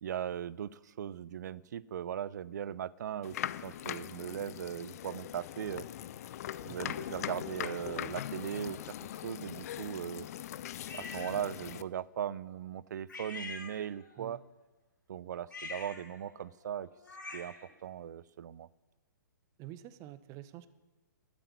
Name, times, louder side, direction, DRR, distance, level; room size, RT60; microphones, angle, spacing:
voice 1, 0.0-5.9 6.6-8.8 9.2-10.3 10.9-14.4 15.1-16.9 17.3-17.5 17.8-18.7, right 9 dB, 60° right, 20 dB, 0.6 m, -39 dB
sound 1, 3.2-11.8, left 11 dB, 50° left, 0.6 m, -41 dB
voice 2, 6.7-7.0 14.2-14.4 19.6-20.7, right 13 dB, 30° right, 14 dB, 0.8 m, -48 dB
sound 2, 10.9-11.4 13.1-14.2 15.4-17.7, left 3 dB, 80° left, 4.1 m, -45 dB
12.5 x 8.8 x 9.7 m, 1.2 s
hypercardioid pair, 125°, 11 cm